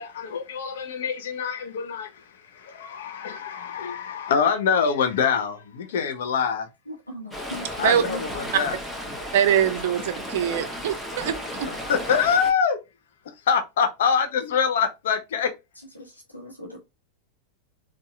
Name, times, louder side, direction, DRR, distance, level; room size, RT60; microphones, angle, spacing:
voice 1, 0.0-6.7 7.8-8.8 11.6-12.8 13.2-15.5, left 6 dB, 60° left, 0.7 m, -25 dB
voice 2, 6.9-8.2 16.0-16.8, equal, 85° left, 0.9 m, -39 dB
Stream, 7.3-12.5, equal, ahead, 0.9 m, -34 dB
voice 3, 9.3-11.7, right 9 dB, 55° right, 0.5 m, -23 dB
4.0 x 2.4 x 2.3 m
figure-of-eight pair, 90°, 0 cm